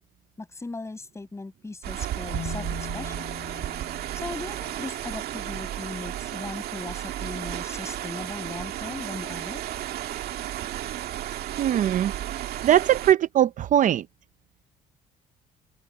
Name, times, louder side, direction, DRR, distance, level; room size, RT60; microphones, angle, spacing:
voice 1, 0.4-2.6 2.9-3.2 4.1-9.6, left 3 dB, 15° left, 7.2 m, -38 dB
sound 1, 1.8-13.1, right 12 dB, 70° right, 1.8 m, -33 dB
Marimba xylophone, 2.3-5.3, left 10 dB, 60° left, 5.6 m, -41 dB
voice 2, 11.6-12.1 12.6-14.1, right 11 dB, 50° right, 0.6 m, -20 dB
open air
cardioid pair, 110°, 17 cm